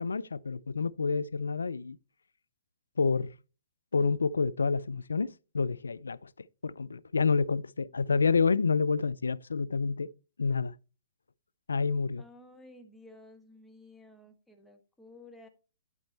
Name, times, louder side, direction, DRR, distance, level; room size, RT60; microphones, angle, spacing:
voice 1, 0.0-2.0 3.0-3.3 3.9-6.3 6.6-10.1 10.4-10.7 11.7-12.2, left 4 dB, 85° left, 0.3 m, -28 dB
voice 2, 12.2-15.5, left 2 dB, 5° left, 1.2 m, -53 dB
11.0 x 4.3 x 4.1 m
hypercardioid pair, 130°, 0 cm